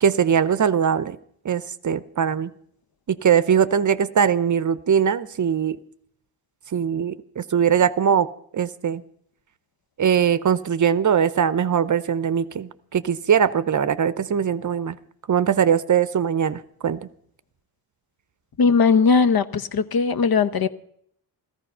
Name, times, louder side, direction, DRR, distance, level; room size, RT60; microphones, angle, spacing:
voice 1, 0.0-1.2 1.4-2.5 3.1-5.8 6.7-8.3 8.5-9.0 10.0-15.0 15.3-17.1, right 8 dB, 45° right, 15 dB, 0.7 m, -21 dB
voice 2, 18.6-20.7, left 5 dB, 55° left, 12 dB, 0.9 m, -19 dB
14.5 x 14.0 x 5.5 m, 0.66 s
cardioid pair, 75°, 44 cm